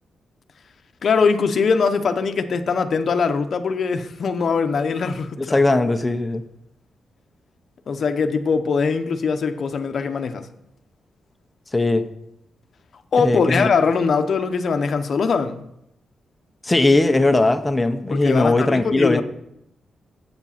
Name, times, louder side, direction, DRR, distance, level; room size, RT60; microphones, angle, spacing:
voice 1, 1.0-5.6 7.9-10.5 13.1-15.6 18.1-19.2, left 5 dB, 50° left, 0.7 m, -21 dB
voice 2, 5.4-6.4 11.7-12.1 13.2-13.7 16.6-19.2, left 2 dB, 15° left, 0.6 m, -19 dB
8.0 x 7.4 x 5.6 m
wide cardioid pair, 165°, 0 cm